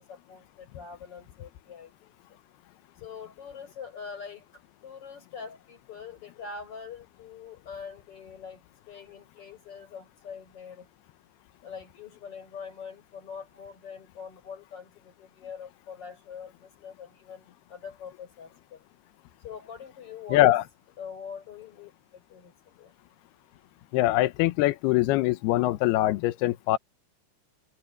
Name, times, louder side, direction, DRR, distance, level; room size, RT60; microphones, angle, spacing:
voice 1, 0.0-2.1 3.0-4.5 4.8-10.9 11.6-18.8 19.4-20.6 21.0-21.9 22.3-22.5 22.8-22.9, left 6 dB, 25° left, 7.9 m, -43 dB
voice 2, 20.3-20.6 23.9-26.8, left 16 dB, 90° left, 2.2 m, -23 dB
omnidirectional pair, 5.8 m